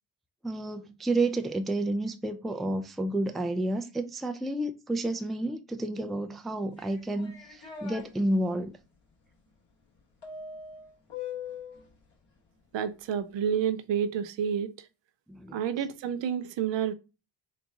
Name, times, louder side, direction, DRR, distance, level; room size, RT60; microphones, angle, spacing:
voice 1, 0.4-8.8 15.3-15.6, right 1 dB, ahead, 0.3 m, -30 dB
sound 1, 6.8-8.0 10.2-11.8, left 6 dB, 60° left, 2.1 m, -41 dB
voice 2, 12.7-14.7 15.5-16.9, right 8 dB, 65° right, 0.6 m, -29 dB
3.9 x 2.3 x 3.8 m
supercardioid pair, 55°, 47 cm